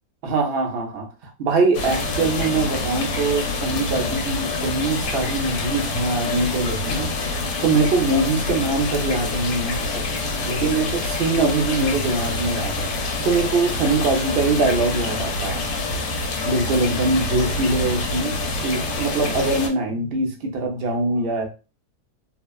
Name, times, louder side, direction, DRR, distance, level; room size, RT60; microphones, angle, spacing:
voice 1, 0.2-7.1 7.6-15.7 16.4-21.5, right 3 dB, 55° right, 2 dB, 0.7 m, -23 dB
sound 1, 1.7-19.7, left 2 dB, 80° left, 1.2 m, -26 dB
3.3 x 2.1 x 2.3 m, 0.31 s
omnidirectional pair, 1.8 m